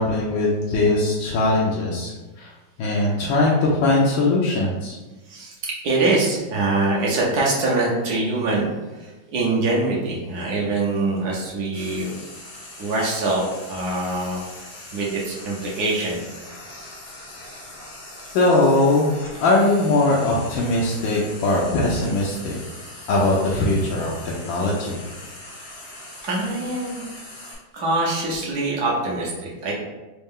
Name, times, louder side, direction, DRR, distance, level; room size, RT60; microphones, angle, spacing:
voice 1, 0.0-2.1 2.4-2.5 2.8-5.0 18.3-19.1 19.4-22.6 23.1-25.0, left 2 dB, 80° left, -4 dB, 1.4 m, -20 dB
voice 2, 5.3-12.1 12.8-14.4 14.9-16.2 26.2-27.0 27.7-29.7, right 2 dB, 60° right, -4 dB, 1.2 m, -24 dB
Frying (food), 11.7-27.5, left 1 dB, 50° left, 0.7 m, -41 dB
4.2 x 2.3 x 3.5 m, 1.2 s
omnidirectional pair, 2.2 m